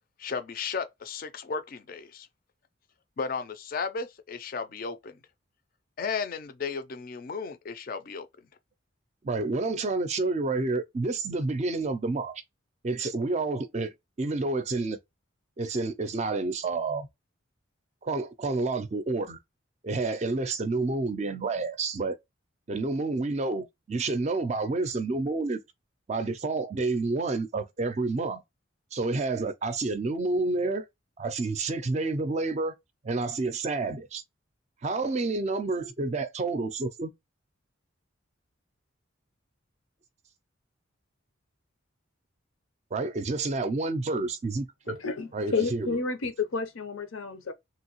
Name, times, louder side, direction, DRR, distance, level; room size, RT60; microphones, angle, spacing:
voice 1, 0.2-2.3 3.2-5.2 6.0-8.3, left 5 dB, 45° left, 0.4 m, -34 dB
voice 2, 9.2-12.3 12.8-15.0 15.6-17.1 18.0-19.4 19.8-22.2 22.7-25.6 26.1-28.4 28.9-30.9 31.2-32.7 33.0-34.2 34.8-37.1 42.9-45.0 45.3-46.0, right 3 dB, 35° right, 0.4 m, -29 dB
voice 3, 45.0-47.5, left 4 dB, 90° left, 0.6 m, -30 dB
3.0 x 2.7 x 2.9 m
head